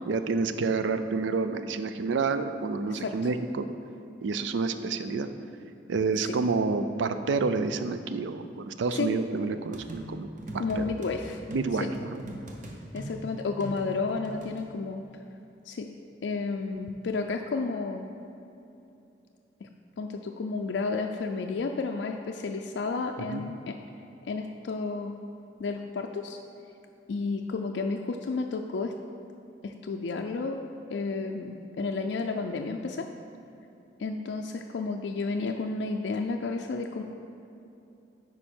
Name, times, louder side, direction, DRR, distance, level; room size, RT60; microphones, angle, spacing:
voice 1, 0.0-3.7 4.2-5.3 5.9-10.3 10.8-10.9 11.5-12.2 23.3-23.4, right 4 dB, 80° right, 10 dB, 0.4 m, -29 dB
sound 1, 9.7-11.1 11.5-14.6, right 1 dB, 45° right, 0.9 m, -41 dB
voice 2, 10.6-11.4 12.9-15.0 15.7-15.9 16.2-18.0 19.6-19.7 20.0-23.7 24.3-25.2 25.6-26.4 27.1-28.9 29.6-30.6 30.9-33.1 34.0-37.0, left 4 dB, 70° left, 3 dB, 0.4 m, -31 dB
9.9 x 4.7 x 4.4 m, 2.8 s
head